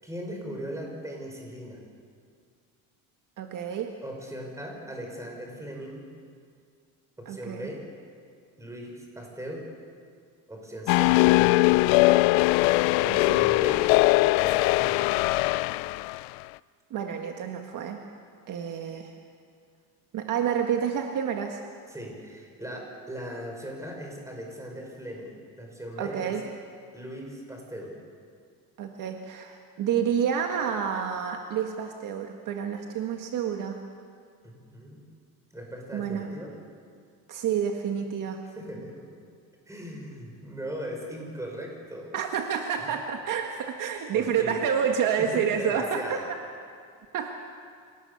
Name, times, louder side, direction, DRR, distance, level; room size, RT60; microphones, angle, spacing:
voice 1, 0.0-1.8 4.0-6.1 7.2-7.9 8.6-9.7 10.5-12.1 13.0-13.9 14.4-15.2 21.9-26.4 26.9-28.0 34.4-35.0 35.5-36.5 38.4-39.1 39.7-42.2 44.1-44.6 45.2-46.2, equal, 10° right, 0 dB, 5.8 m, -39 dB
voice 2, 3.4-3.9 7.2-7.7 13.1-13.5 16.9-18.1 18.5-19.1 20.1-21.6 26.0-26.4 28.8-33.8 35.9-36.3 37.3-38.4 42.1-46.2 47.1-47.3, right 8 dB, 50° right, 3 dB, 1.7 m, -29 dB
sound 1, 10.9-16.2, left 21 dB, 90° left, 0.5 m, -21 dB
27.5 x 18.5 x 7.0 m, 2.1 s
cardioid pair, 125°, 39 cm